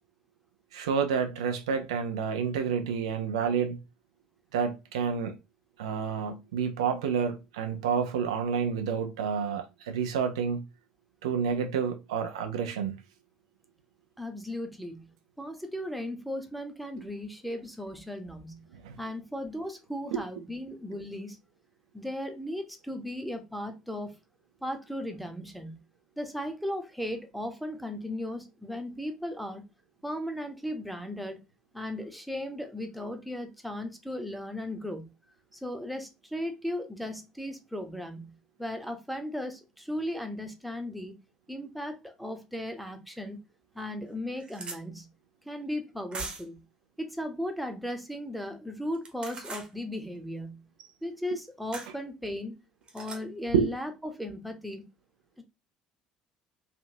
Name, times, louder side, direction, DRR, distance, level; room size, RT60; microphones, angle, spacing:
voice 1, 0.7-3.8 4.5-5.4 5.8-10.6 11.2-13.0 18.8-19.0 53.5-53.7, right 6 dB, 75° right, 0.4 m, -29 dB
voice 2, 14.2-15.1 15.4-18.6 19.0-21.4 21.9-24.1 24.6-25.8 26.2-29.6 30.0-31.4 31.7-35.1 35.5-41.1 41.5-43.4 43.7-45.1 45.4-46.6 47.0-50.6 51.0-52.5 52.9-54.8 55.4-55.5, left 1 dB, ahead, 0.9 m, -36 dB
sound 1, 43.2-43.3 43.8-43.9 44.1-44.8 46.1-46.6 48.9-49.7 51.7-51.9 52.9-53.2, right 3 dB, 30° right, 0.9 m, -40 dB
3.2 x 2.6 x 2.6 m
figure-of-eight pair, 55°, 3 cm